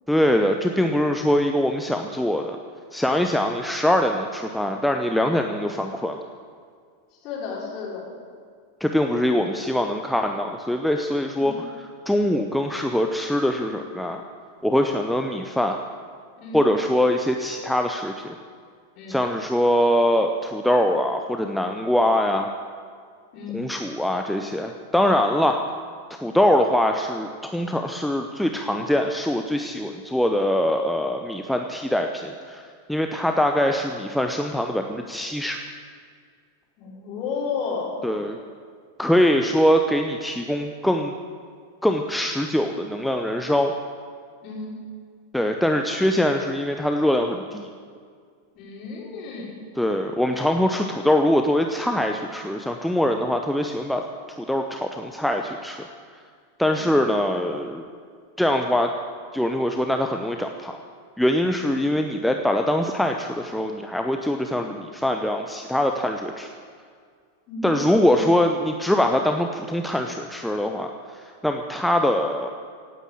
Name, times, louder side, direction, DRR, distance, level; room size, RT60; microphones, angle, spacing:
voice 1, 0.1-2.6 2.9-6.2 8.8-14.2 14.6-15.8 16.5-18.4 19.1-22.5 23.5-25.6 26.2-32.6 32.9-35.6 38.0-38.4 39.0-41.1 41.8-43.7 45.3-47.7 49.8-54.0 54.5-55.8 56.6-57.9 58.4-58.9 59.3-60.8 61.2-66.5 67.6-72.5, left 1 dB, ahead, 3 dB, 0.8 m, -23 dB
voice 2, 7.2-8.1 11.3-11.6 16.3-16.6 18.9-19.2 23.3-23.6 36.8-38.0 44.4-44.7 48.5-49.6 56.7-57.0 67.5-68.3, left 5 dB, 40° left, -4 dB, 5.1 m, -33 dB
16.5 x 9.4 x 8.6 m, 2.1 s
figure-of-eight pair, 90°, 0 cm